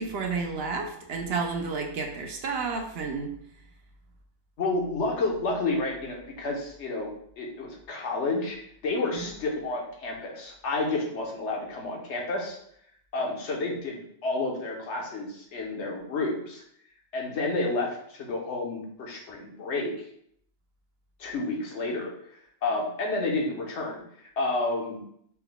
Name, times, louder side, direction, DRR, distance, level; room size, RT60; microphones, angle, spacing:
voice 1, 0.0-3.3 9.1-9.3, right 4 dB, 65° right, 3 dB, 0.8 m, -31 dB
voice 2, 4.6-7.1 7.4-8.6 8.8-12.6 13.1-16.6 17.1-19.9 21.2-22.1 22.6-25.0, left 2 dB, 70° left, 0 dB, 1.1 m, -30 dB
4.2 x 2.2 x 3.8 m, 0.68 s
omnidirectional pair, 1.2 m